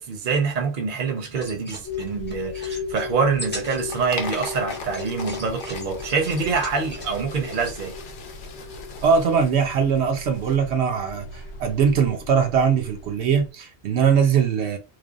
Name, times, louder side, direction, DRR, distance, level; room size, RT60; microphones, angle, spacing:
voice 1, 0.0-7.9, right 5 dB, 55° right, 0.8 m, -25 dB
Lantern swinging, 1.3-7.8, left 1 dB, 10° left, 0.7 m, -40 dB
sound 1, 1.8-13.5, left 4 dB, 85° left, 0.9 m, -37 dB
sound 2, 3.4-10.6, left 4 dB, 60° left, 0.7 m, -39 dB
voice 2, 9.0-14.8, right 6 dB, 80° right, 0.9 m, -21 dB
3.2 x 2.1 x 2.3 m
omnidirectional pair, 1.1 m